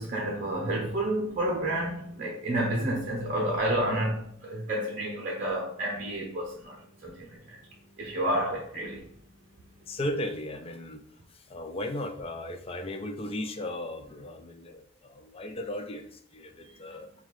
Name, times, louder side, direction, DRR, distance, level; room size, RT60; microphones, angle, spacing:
voice 1, 0.0-7.6 8.0-9.0, right 1 dB, 45° right, 0.7 m, -30 dB
voice 2, 9.9-11.0 11.3-17.1, left 1 dB, 30° left, 0.4 m, -36 dB
5.6 x 2.3 x 3.2 m
head